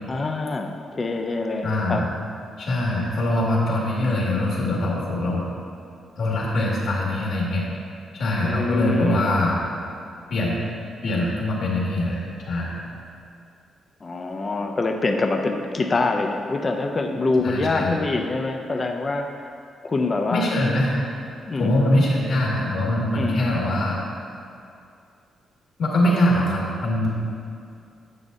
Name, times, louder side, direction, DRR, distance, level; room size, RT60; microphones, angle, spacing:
voice 1, 0.1-2.0 8.5-9.3 14.0-19.5 19.8-20.5 21.5-21.7 23.2-23.5, left 3 dB, 25° left, 4 dB, 0.5 m, -25 dB
voice 2, 1.6-2.1 2.6-5.5 6.2-7.7 8.1-9.7 10.3-10.6 11.0-12.8 17.4-18.0 20.3-21.0 21.6-24.2 25.8-27.1, left 1 dB, 60° left, -4 dB, 1.9 m, -23 dB
9.6 x 8.6 x 2.7 m, 2.4 s
wide cardioid pair, 170°, 0 cm